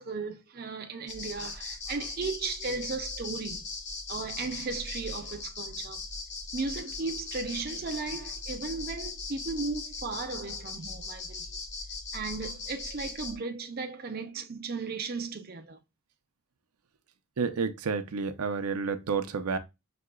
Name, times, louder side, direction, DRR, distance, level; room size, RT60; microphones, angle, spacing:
voice 1, 0.0-3.6 4.1-6.0 6.5-11.5 12.1-15.8, right 4 dB, 45° right, 0.5 m, -36 dB
sound 1, 1.1-13.4, left 3 dB, 50° left, 1.1 m, -39 dB
voice 2, 17.4-19.6, right 5 dB, 90° right, 0.6 m, -30 dB
6.0 x 2.8 x 2.3 m
head